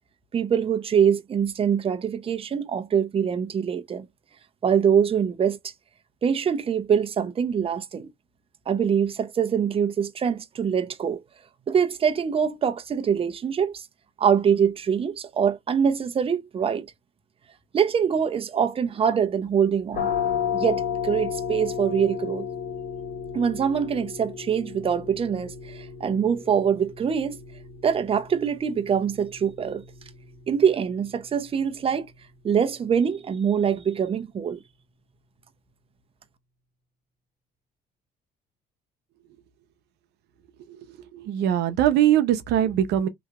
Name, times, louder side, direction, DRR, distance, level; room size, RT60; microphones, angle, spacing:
voice 1, 0.3-4.1 4.6-5.6 6.2-8.1 8.7-11.2 11.7-13.8 14.2-16.9 17.7-20.1 20.5-22.5 23.3-27.4 27.8-29.8 30.5-32.1 32.4-34.6, right 7 dB, 35° right, 0.6 m, -24 dB
sound 1, 19.9-31.4, left 8 dB, 55° left, 1.5 m, -33 dB
voice 2, 40.7-43.1, right 11 dB, 80° right, 0.7 m, -22 dB
3.1 x 2.8 x 2.4 m
cardioid pair, 110°, 17 cm